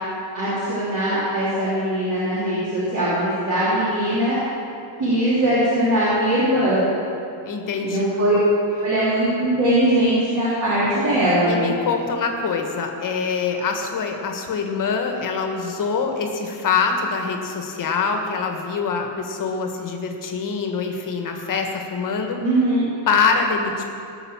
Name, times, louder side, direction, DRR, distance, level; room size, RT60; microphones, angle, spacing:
voice 1, 0.3-4.4 5.0-6.8 7.8-8.3 8.8-11.7 22.4-22.8, right 1 dB, 40° right, -10 dB, 3.6 m, -20 dB
voice 2, 7.4-8.0 11.5-22.4 23.1-23.8, left 5 dB, 40° left, 3 dB, 1.5 m, -24 dB
17.5 x 6.8 x 7.2 m, 2.5 s
cardioid pair, 175°, 49 cm